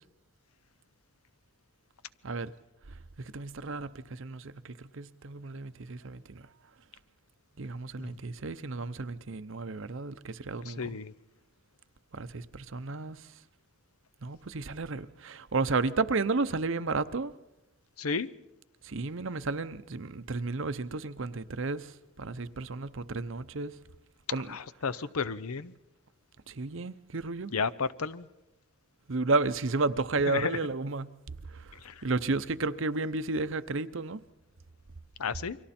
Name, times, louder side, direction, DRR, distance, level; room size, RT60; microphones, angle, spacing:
voice 1, 3.3-6.4 7.6-10.8 12.1-13.2 14.2-17.3 18.8-21.9 22.2-23.7 24.3-24.5 26.5-27.5 29.1-31.1 32.0-34.2, right 3 dB, 60° right, 0.7 m, -32 dB
voice 2, 10.6-11.1 18.0-18.3 24.5-25.7 27.5-28.3 30.2-30.6 31.8-32.0 35.2-35.6, left 5 dB, 80° left, 0.7 m, -32 dB
29.5 x 24.0 x 4.3 m
head